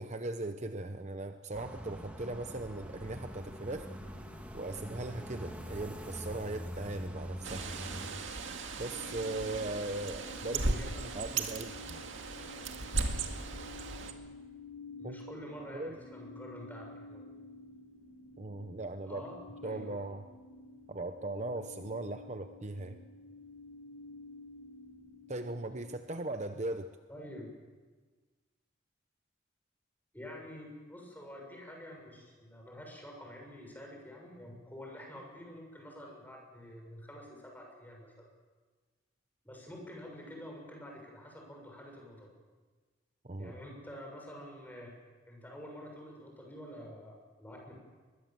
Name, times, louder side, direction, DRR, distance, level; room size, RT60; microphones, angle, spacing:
voice 1, 0.0-3.9 4.5-7.7 8.8-12.0 15.0-15.1 15.7-16.0 18.4-19.2 19.6-20.2 20.9-23.0 25.3-26.9 43.2-43.5, right 2 dB, 35° right, 8 dB, 0.8 m, -39 dB
sound 1, 1.5-8.1, equal, 10° right, 2.6 m, -44 dB
Bird, 7.4-14.1, right 3 dB, 80° right, 2.1 m, -37 dB
sound 2, 8.9-26.0, left 2 dB, 85° left, 2.8 m, -51 dB
voice 2, 10.6-11.0 15.0-17.3 19.0-20.0 27.1-27.5 30.1-38.3 39.4-42.3 43.4-44.9 45.3-47.7, left 1 dB, 10° left, 0 dB, 6.7 m, -48 dB
24.0 x 21.0 x 7.6 m, 1.4 s
head